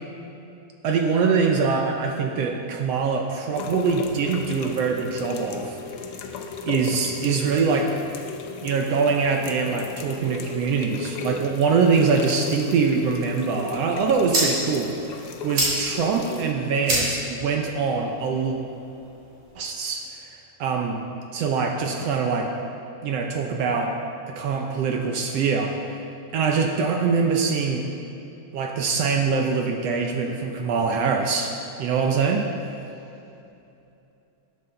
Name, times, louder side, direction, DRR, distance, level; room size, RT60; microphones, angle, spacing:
voice 1, 0.8-5.8 6.7-7.9 8.6-18.6 19.6-20.0 20.6-21.0 21.3-22.5 23.0-23.9 24.3-25.8 26.3-27.8 28.5-31.5 31.8-32.5, right 5 dB, 70° right, 2 dB, 1.6 m, -23 dB
sound 1, 3.5-16.5, left 5 dB, 90° left, 1.2 m, -35 dB
sound 2, 13.7-19.7, right 1 dB, 55° right, 3.9 m, -30 dB
13.0 x 9.6 x 3.8 m, 2.8 s
omnidirectional pair, 3.4 m